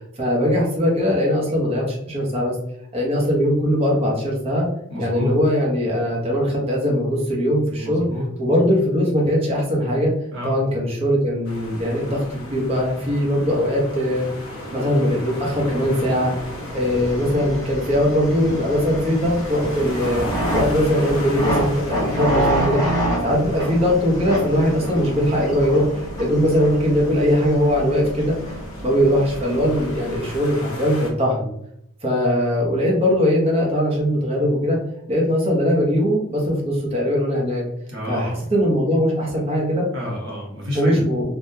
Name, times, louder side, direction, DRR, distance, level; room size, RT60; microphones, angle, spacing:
voice 1, 0.2-2.5 2.9-4.7 5.0-8.1 8.4-10.1 10.4-14.3 14.7-16.3 16.7-20.3 20.5-22.8 23.2-28.4 28.8-31.5 32.0-34.8 35.1-37.6 38.1-39.9 40.7-41.3, equal, 25° right, -2 dB, 0.8 m, -20 dB
voice 2, 4.9-5.3 7.8-8.5 10.3-10.6 37.9-38.4 39.9-41.1, left 1 dB, 60° right, -4 dB, 1.1 m, -29 dB
sound 1, 11.4-31.1, equal, 80° left, 1.0 m, -34 dB
sound 2, 16.5-30.4, right 1 dB, 15° left, 0.9 m, -28 dB
3.5 x 2.2 x 2.7 m, 0.75 s
head